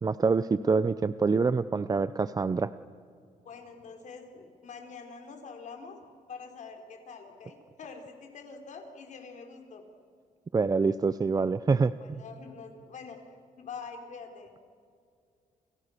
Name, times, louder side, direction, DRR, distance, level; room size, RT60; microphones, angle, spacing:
voice 1, 0.0-2.7 10.5-12.2, right 4 dB, 25° right, 14 dB, 0.6 m, -26 dB
voice 2, 3.4-6.0 6.3-9.9 12.0-13.2 13.6-14.5, left 5 dB, 60° left, 4 dB, 4.6 m, -45 dB
29.5 x 29.0 x 6.7 m, 2.2 s
cardioid pair, 115°, 14 cm